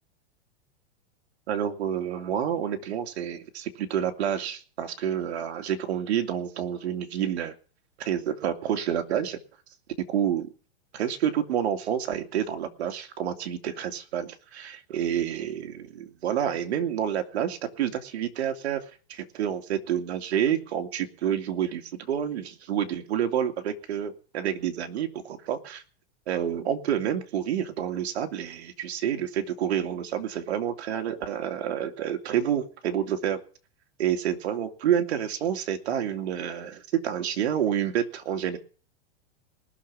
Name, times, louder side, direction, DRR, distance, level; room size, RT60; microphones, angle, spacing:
voice 1, 1.5-7.5 8.0-9.4 10.1-10.5 10.9-18.8 19.1-25.8 26.3-33.4 34.0-38.6, right 9 dB, 75° right, 5 dB, 2.5 m, -28 dB
19.5 x 6.9 x 7.3 m, 0.39 s
supercardioid pair, 145°, 33 cm